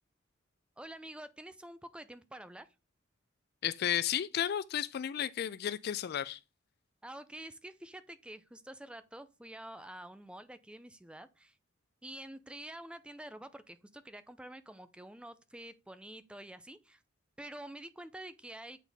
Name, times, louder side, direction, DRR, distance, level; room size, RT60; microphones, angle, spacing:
voice 1, 0.8-2.7 7.0-11.6 12.0-17.0 17.4-18.8, right 1 dB, 5° right, 0.4 m, -48 dB
voice 2, 3.6-6.4, left 10 dB, 55° left, 0.3 m, -33 dB
9.1 x 4.0 x 3.4 m
head